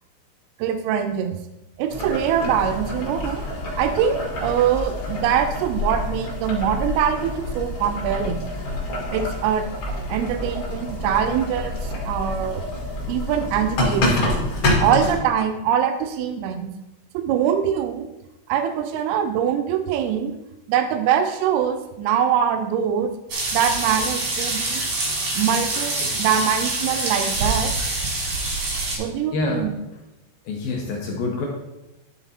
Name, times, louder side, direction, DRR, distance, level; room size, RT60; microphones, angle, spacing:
voice 1, 0.6-1.4 1.8-3.4 3.8-8.5 9.1-9.7 10.1-12.6 13.1-14.1 14.8-16.7 17.1-18.1 18.5-20.3 20.7-23.1 23.5-24.8 25.3-27.7 29.0-29.8, right 8 dB, 90° right, 7 dB, 2.2 m, -23 dB
Boiling, 1.9-15.2, left 1 dB, 50° left, 1.8 m, -27 dB
sound 1, 23.3-29.0, right 2 dB, 70° right, 1.3 m, -25 dB
voice 2, 29.3-29.6 30.5-31.5, left 3 dB, 75° left, -1 dB, 2.2 m, -26 dB
11.5 x 4.0 x 4.2 m, 0.96 s
omnidirectional pair, 5.3 m